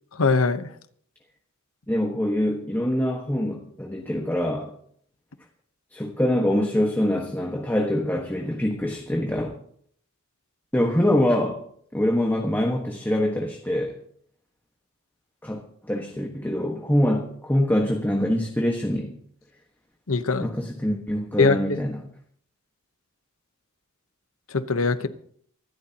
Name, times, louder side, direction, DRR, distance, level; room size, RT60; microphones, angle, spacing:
voice 1, 0.1-0.7 20.1-20.5 21.4-21.6 24.5-25.1, left 4 dB, 75° left, 1.0 m, -21 dB
voice 2, 1.9-4.7 5.9-9.6 10.7-11.6 11.9-14.0 15.4-15.6 15.9-19.1 20.4-22.0, left 1 dB, 10° left, 1.5 m, -24 dB
24.0 x 13.0 x 2.9 m
head